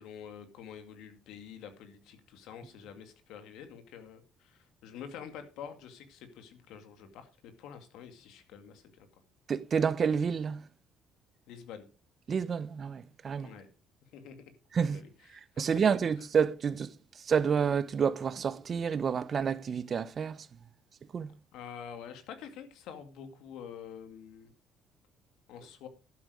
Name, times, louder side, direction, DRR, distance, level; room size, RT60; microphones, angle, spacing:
voice 1, 0.0-9.1 11.5-11.9 13.4-13.7 14.1-14.4 14.8-15.9 21.5-24.5 25.5-25.9, left 8 dB, 80° left, 2.2 m, -47 dB
voice 2, 9.5-10.6 12.3-13.5 14.7-15.0 15.6-16.9 17.2-20.4 21.1-21.3, right 6 dB, 45° right, 0.8 m, -29 dB
11.5 x 8.2 x 4.9 m
cardioid pair, 90°, 0 cm